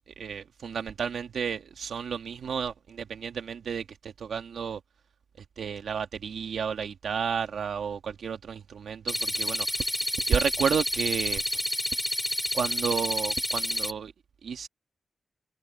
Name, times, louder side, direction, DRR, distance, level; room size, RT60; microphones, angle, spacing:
voice 1, 0.2-4.8 5.6-9.9 10.3-11.4 12.5-14.1 14.4-14.7, right 7 dB, 85° right, 1.5 m, -31 dB
sound 1, 9.1-13.9, left 1 dB, 10° left, 3.4 m, -29 dB
wide cardioid pair, 105°, 0 cm